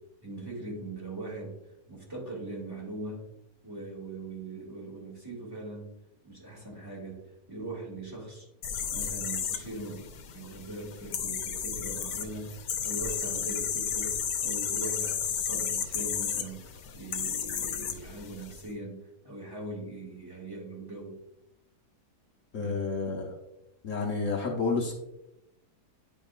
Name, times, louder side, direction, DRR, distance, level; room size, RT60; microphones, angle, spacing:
voice 1, 0.2-1.6 1.9-3.2 3.6-5.9 6.2-8.5 8.9-10.1 10.3-16.6 16.9-21.2 22.6-22.8, right 2 dB, 15° right, -4 dB, 2.0 m, -40 dB
sound 1, 8.6-18.6, left 7 dB, 85° left, 1.2 m, -33 dB
voice 2, 22.5-23.4 23.8-24.9, left 4 dB, 60° left, 0 dB, 1.3 m, -30 dB
9.6 x 5.2 x 2.4 m, 0.85 s
omnidirectional pair, 1.6 m